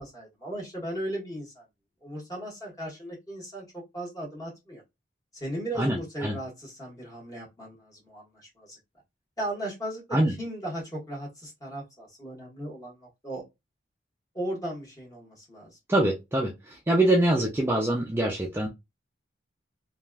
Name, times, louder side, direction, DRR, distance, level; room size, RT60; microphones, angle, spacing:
voice 1, 0.0-1.6 2.0-4.8 5.3-8.8 9.4-13.4 14.3-15.8, right 1 dB, 20° left, -4 dB, 1.5 m, -37 dB
voice 2, 5.8-6.4 10.1-10.3 15.9-18.7, right 1 dB, 15° right, -1 dB, 0.4 m, -24 dB
3.2 x 2.4 x 2.3 m, 0.22 s
head